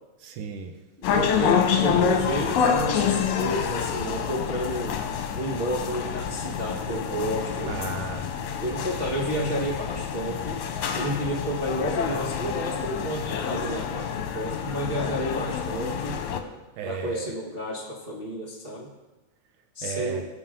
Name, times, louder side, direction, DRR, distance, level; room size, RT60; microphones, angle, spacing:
voice 1, 0.2-0.7 7.7-8.3 16.8-17.3 19.8-20.3, right 6 dB, 85° right, 5 dB, 2.4 m, -34 dB
sound 1, 1.0-16.4, left 7 dB, 75° left, 2.2 m, -27 dB
voice 2, 1.1-5.0 5.3-7.7 8.6-10.6 10.9-16.2 16.8-18.9 19.7-20.3, equal, 55° right, -4 dB, 0.6 m, -30 dB
19.5 x 7.1 x 3.8 m, 1.1 s
omnidirectional pair, 3.5 m